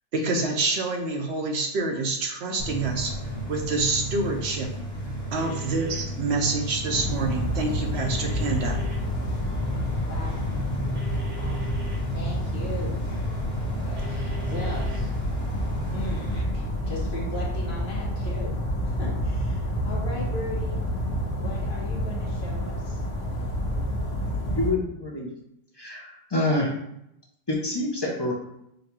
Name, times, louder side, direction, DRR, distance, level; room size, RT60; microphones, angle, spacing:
voice 1, 0.1-3.1 3.5-4.7 5.3-8.8, right 3 dB, 65° right, 2 dB, 0.8 m, -27 dB
sound 1, 2.6-16.4, equal, 5° left, 1.2 m, -34 dB
sound 2, 5.3-6.0 7.9-9.0 11.0-12.0 14.0-15.0, right 6 dB, 85° right, 1.6 m, -43 dB
sound 3, 6.9-24.7, equal, 85° left, 1.2 m, -29 dB
voice 2, 10.0-10.5 11.4-11.6 12.1-13.0 14.0-15.0 15.9-18.6 18.8-20.8 21.4-23.0, left 1 dB, 60° left, -3 dB, 1.2 m, -38 dB
voice 3, 24.5-25.3 25.7-26.7 27.5-28.3, left 2 dB, 30° left, -2 dB, 0.5 m, -27 dB
5.2 x 2.2 x 2.9 m, 0.79 s
omnidirectional pair, 1.2 m